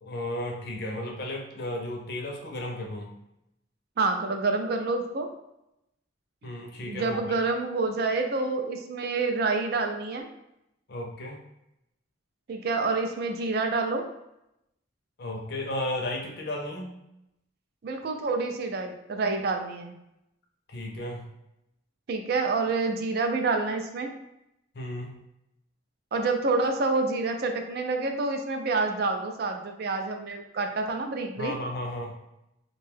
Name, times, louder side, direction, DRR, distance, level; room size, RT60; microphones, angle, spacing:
voice 1, 0.0-3.1 6.4-7.4 10.9-11.4 15.2-16.9 20.7-21.3 24.7-25.2 31.4-32.2, left 1 dB, 50° left, 0 dB, 0.5 m, -34 dB
voice 2, 4.0-5.3 6.4-6.5 6.9-10.3 12.5-14.1 17.8-20.0 22.1-24.1 26.1-31.5, right 3 dB, 50° right, 5 dB, 0.3 m, -28 dB
2.6 x 2.2 x 3.3 m, 0.85 s
head